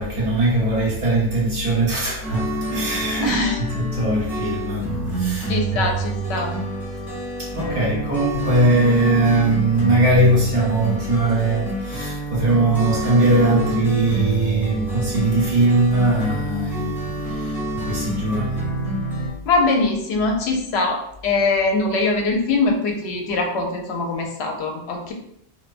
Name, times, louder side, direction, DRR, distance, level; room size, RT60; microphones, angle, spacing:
voice 1, 0.0-6.0 7.4-18.6, right 2 dB, 60° right, 1.2 m, -20 dB
sound 1, 2.2-19.3, right 2 dB, ahead, 0.6 m, -28 dB
voice 2, 3.2-3.6 5.5-6.6 19.4-25.1, left 3 dB, 90° left, 0.8 m, -22 dB
2.5 x 2.1 x 2.4 m
omnidirectional pair, 1.1 m